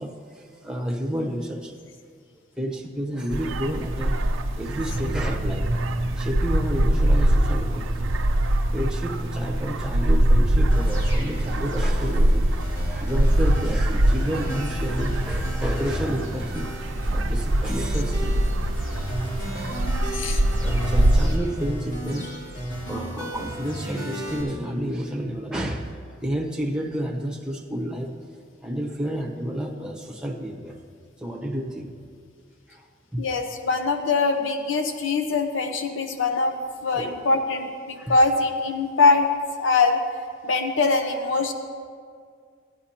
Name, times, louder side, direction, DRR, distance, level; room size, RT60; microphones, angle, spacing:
voice 1, 0.0-1.8 2.6-4.2 4.5-5.7 6.2-8.1 8.7-12.5 12.9-16.7 17.1-18.3 19.6-19.9 20.6-22.3 22.9-25.9 26.2-28.2 28.6-30.8 31.2-31.9 32.7-32.9 33.1-33.2 36.9-37.2 38.0-38.1, equal, 5° right, -1 dB, 0.9 m, -30 dB
sound 1, 3.3-21.4, right 1 dB, 85° right, 0.6 m, -23 dB
sound 2, 10.7-24.4, equal, 85° left, 2.9 m, -33 dB
voice 2, 33.2-36.6 36.8-39.3 39.6-40.0 40.4-41.5, left 3 dB, 70° left, 5 dB, 0.8 m, -22 dB
16.0 x 9.9 x 2.9 m, 2.1 s
head